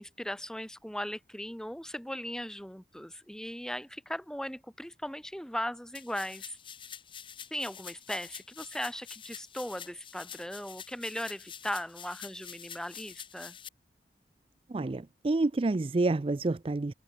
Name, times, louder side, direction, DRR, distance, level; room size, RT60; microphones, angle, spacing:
voice 1, 0.0-6.6 7.5-13.6, equal, 5° left, 1.9 m, -38 dB
sound 1, 5.9-13.7, left 8 dB, 30° left, 3.2 m, -47 dB
voice 2, 14.7-16.9, right 2 dB, 30° right, 0.4 m, -28 dB
head